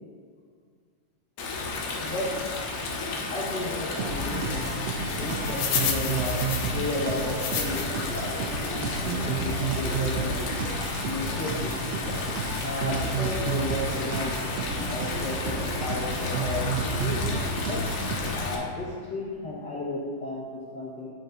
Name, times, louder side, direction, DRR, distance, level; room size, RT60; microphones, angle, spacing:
Stream, 1.4-18.5, left 3 dB, 65° left, 2.0 m, -32 dB
voice 1, 3.3-4.7 5.2-10.5 11.0-11.8 12.6-14.3 14.7-16.7 17.0-17.8 18.1-21.1, left 2 dB, 50° left, -6 dB, 1.3 m, -34 dB
sound 1, 4.0-18.6, right 4 dB, 85° right, 1.4 m, -31 dB
sound 2, 5.1-8.1 8.6-8.7 9.4-9.6 10.1-10.2 10.3-10.5, left 7 dB, 85° left, 2.5 m, -31 dB
9.2 x 5.8 x 3.9 m, 2.1 s
omnidirectional pair, 3.8 m